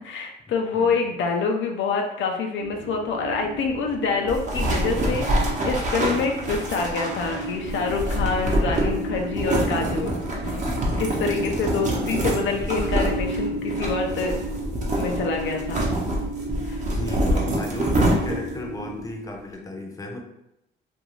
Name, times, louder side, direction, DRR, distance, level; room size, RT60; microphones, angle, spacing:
voice 1, 0.0-10.7 11.0-14.3 15.0-15.8 16.7-16.8, left 4 dB, 70° left, 2 dB, 0.4 m, -26 dB
sound 1, 2.6-19.1, right 1 dB, 90° right, 0.6 m, -34 dB
sound 2, 4.3-18.6, right 1 dB, 40° right, 0.8 m, -26 dB
voice 2, 11.1-12.2 16.9-20.2, left 2 dB, 15° left, 1 dB, 0.6 m, -35 dB
2.5 x 2.3 x 3.0 m, 0.83 s
cardioid pair, 90°, 20 cm